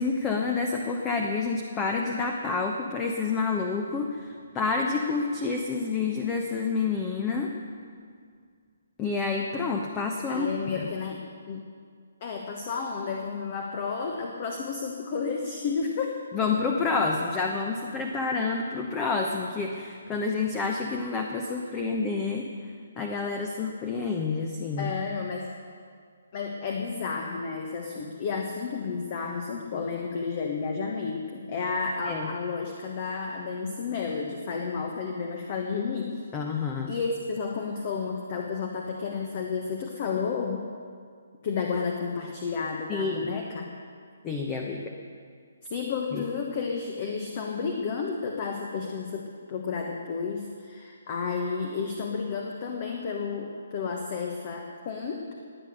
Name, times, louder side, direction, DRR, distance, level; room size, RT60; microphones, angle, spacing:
voice 1, 0.0-7.5 9.0-10.5 10.7-10.9 16.3-22.4 23.0-24.9 32.0-32.3 36.3-36.9 42.9-43.3 44.2-44.9 46.1-46.2, left 4 dB, 15° left, 2 dB, 1.0 m, -28 dB
voice 2, 10.3-11.6 12.2-16.2 24.8-25.5 26.3-36.2 36.9-40.6 41.4-43.7 45.6-55.3, left 5 dB, 35° left, 2 dB, 1.3 m, -31 dB
20.5 x 8.5 x 6.6 m, 2.1 s
figure-of-eight pair, 135°, 0 cm